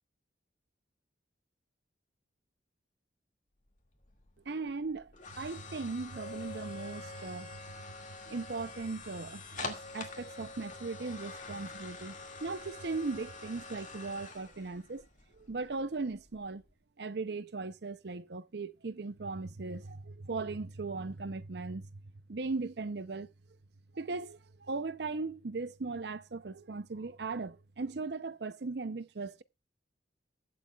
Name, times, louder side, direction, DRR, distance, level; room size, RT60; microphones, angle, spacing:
sound 1, 3.7-16.7, left 3 dB, 40° left, 2.2 m, -47 dB
voice 1, 4.5-7.6 8.3-12.2 12.4-15.0 15.4-16.6 17.0-22.0 22.3-23.3 23.9-29.4, right 3 dB, 60° right, 0.6 m, -38 dB
21.5 x 7.8 x 2.4 m
head